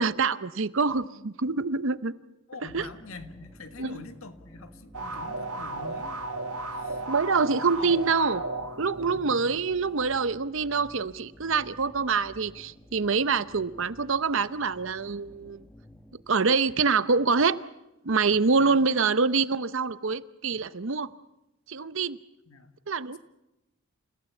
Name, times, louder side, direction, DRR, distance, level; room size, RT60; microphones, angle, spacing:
voice 1, 0.0-2.1 2.7-2.8 3.8-4.0 7.1-8.4 8.8-15.6 16.3-17.6 18.0-21.1 21.7-22.2 22.9-23.2, right 4 dB, 60° right, 15 dB, 0.8 m, -25 dB
voice 2, 2.5-6.3 6.7-7.0 7.5-7.9 9.1-9.4 18.6-18.8 22.5-22.8 23.1-23.2, left 3 dB, 70° left, 9 dB, 1.7 m, -45 dB
sound 1, 2.7-16.2, equal, 5° left, 1.1 m, -52 dB
sound 2, 4.9-9.6, right 2 dB, 80° right, 1.7 m, -35 dB
29.0 x 16.0 x 8.3 m, 0.93 s
head